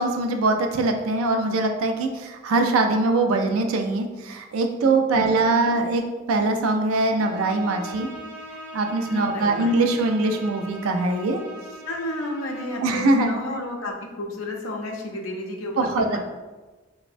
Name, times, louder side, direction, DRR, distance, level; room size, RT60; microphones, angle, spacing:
voice 1, 0.0-6.0 6.3-8.1 8.7-11.4 12.8-13.3 15.8-16.1, right 2 dB, 85° right, 5 dB, 0.3 m, -22 dB
voice 2, 4.8-5.7 9.1-10.0 11.9-16.2, left 1 dB, 75° left, 1 dB, 0.5 m, -32 dB
Bowed string instrument, 7.1-12.8, equal, 20° right, 1.5 m, -41 dB
3.1 x 2.1 x 2.5 m, 1.2 s
head